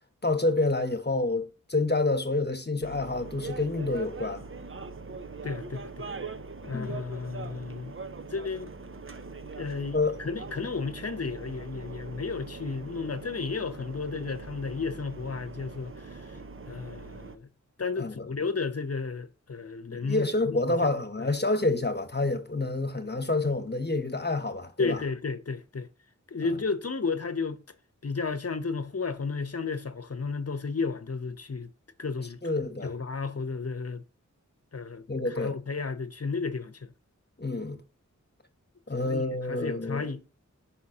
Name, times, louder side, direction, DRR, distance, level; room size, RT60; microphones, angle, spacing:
voice 1, 0.2-4.4 6.6-7.0 9.9-10.2 18.0-18.3 19.9-25.0 32.4-32.9 35.1-35.6 37.4-37.8 38.9-40.1, left 2 dB, 35° left, 1.2 m, -28 dB
sound 1, 2.8-17.4, right 4 dB, 40° right, 0.7 m, -42 dB
voice 2, 5.4-6.1 6.6-8.0 8.3-8.9 9.6-16.4 16.7-17.5 17.8-21.3 24.8-25.9 26.3-27.6 28.0-31.7 32.0-32.4 32.8-34.0 34.7-36.9 39.0-40.2, left 4 dB, 50° left, 0.9 m, -33 dB
5.7 x 4.2 x 5.9 m
wide cardioid pair, 60°, 31 cm